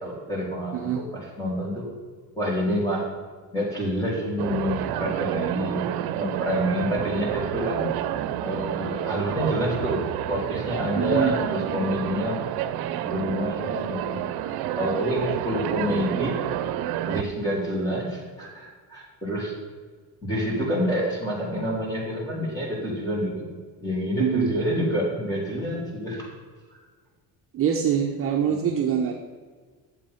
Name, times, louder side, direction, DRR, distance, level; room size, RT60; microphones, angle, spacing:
voice 1, 0.0-1.9 2.3-3.1 3.5-7.9 8.4-12.4 13.0-16.4 17.0-19.5 20.2-23.5 23.8-26.3, equal, 10° left, -4 dB, 3.3 m, -28 dB
voice 2, 0.7-1.1 10.9-11.4 24.2-24.5 27.5-29.1, right 8 dB, 35° right, 0 dB, 0.8 m, -24 dB
sound 1, 4.4-17.2, right 11 dB, 70° right, 0.7 m, -29 dB
11.0 x 7.7 x 5.7 m, 1.5 s
cardioid pair, 170°, 38 cm